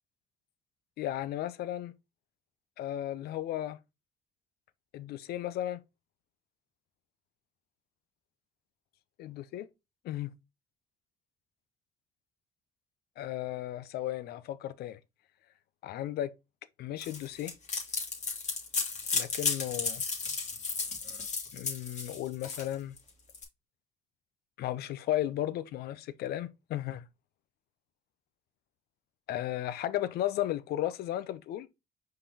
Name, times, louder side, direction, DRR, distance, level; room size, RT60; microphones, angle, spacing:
voice 1, 1.0-1.9 2.8-3.8 4.9-5.8 9.2-9.7 10.0-10.3 13.2-15.0 15.8-16.3 16.8-17.5 19.1-20.0 21.5-23.0 24.6-27.1 29.3-31.7, left 13 dB, 70° left, 0.5 m, -34 dB
sound 1, 17.0-23.4, left 4 dB, 45° left, 1.7 m, -34 dB
4.9 x 3.8 x 2.8 m
supercardioid pair, 75°, 17 cm